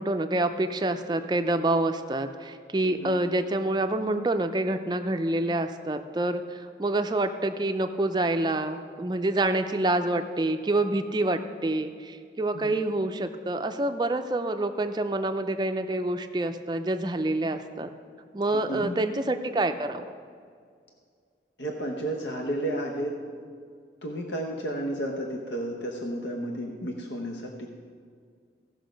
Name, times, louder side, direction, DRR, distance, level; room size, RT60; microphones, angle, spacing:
voice 1, 0.0-17.9 18.3-20.1, right 2 dB, 25° right, 7 dB, 0.4 m, -27 dB
voice 2, 2.8-3.1 12.5-12.7 18.5-19.0 21.6-23.1 24.0-27.7, right 1 dB, 80° left, 1 dB, 0.9 m, -32 dB
16.0 x 6.2 x 5.1 m, 2.1 s
head